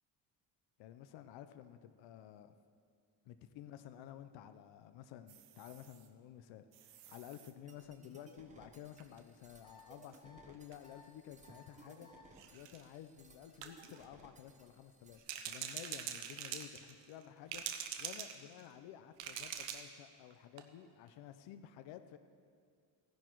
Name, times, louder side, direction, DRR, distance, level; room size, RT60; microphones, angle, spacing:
voice 1, 0.8-2.5 3.3-12.1 12.5-22.2, left 10 dB, 80° left, 10 dB, 0.7 m, -53 dB
sound 1, 5.3-6.1 6.7-7.5 9.0-9.2 10.1-10.2 10.5-10.7 11.5-11.6 12.3-12.8 13.6-14.0 15.2-17.2 17.5-18.7 19.2-20.0 20.3-20.4 20.6-20.7, right 9 dB, 85° right, 1.1 m, -45 dB
sound 2, 7.7-15.2, right 2 dB, 15° right, 1.2 m, -62 dB
sound 3, 9.6-9.8 10.2-10.4 10.8-11.0 11.4-11.6 12.0-12.2, left 5 dB, 10° left, 1.0 m, -60 dB
16.0 x 10.5 x 4.6 m, 2.1 s
cardioid pair, 135°, 43 cm